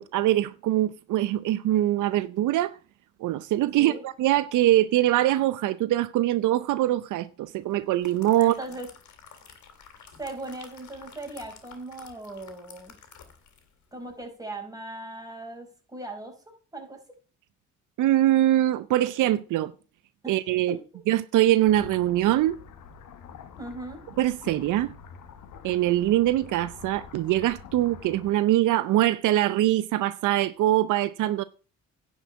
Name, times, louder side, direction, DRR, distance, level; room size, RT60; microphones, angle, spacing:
voice 1, 0.0-2.7 3.2-8.6 18.0-19.7 20.3-20.8 21.1-22.6 24.2-24.9 25.6-31.4, right 14 dB, 85° right, 0.7 m, -23 dB
sound 1, 7.7-13.7 14.1-14.2, left 6 dB, 70° left, 3.1 m, -51 dB
voice 2, 8.4-8.9 10.2-13.0 13.9-17.0 20.2-20.4 20.7-21.0 23.6-24.0, right 1 dB, 10° right, 4.7 m, -39 dB
sound 2, 21.6-28.3, left 7 dB, 85° left, 1.5 m, -46 dB
10.5 x 5.5 x 8.3 m
cardioid pair, 90°, 30 cm